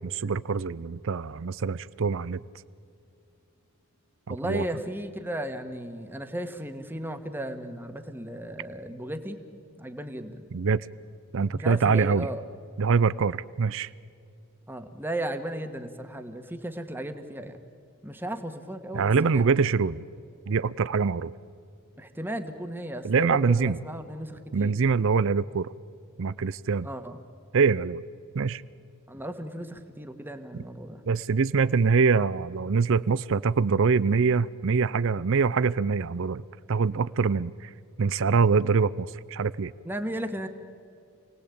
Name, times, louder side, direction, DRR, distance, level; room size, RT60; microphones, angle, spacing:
voice 1, 0.0-2.4 4.3-4.6 10.5-10.9 11.3-12.3 12.8-13.9 18.9-20.0 20.5-21.3 23.0-23.8 24.5-25.7 26.2-26.9 27.5-28.0 28.3-28.6 31.1-36.4 36.7-37.7 38.0-39.7, right 5 dB, 60° right, 17 dB, 0.5 m, -24 dB
voice 2, 4.3-9.4 9.8-10.5 11.5-12.4 14.7-17.6 18.0-19.7 22.0-24.8 26.8-27.2 29.1-31.0 39.8-40.5, right 1 dB, 10° right, 7 dB, 1.6 m, -35 dB
28.5 x 18.5 x 8.6 m, 2.5 s
head